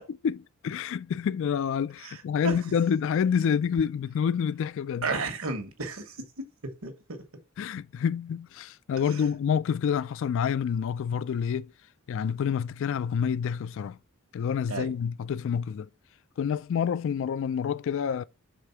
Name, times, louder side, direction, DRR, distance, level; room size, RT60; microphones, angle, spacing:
voice 1, 0.6-5.1 7.6-11.7 12.1-14.0 14.3-15.9 16.4-18.2, left 7 dB, 60° left, 0.3 m, -28 dB
voice 2, 2.0-2.6 5.0-6.2 6.8-7.2 9.1-9.3 14.7-14.9, right 3 dB, 70° right, 1.3 m, -33 dB
5.1 x 3.6 x 5.7 m
head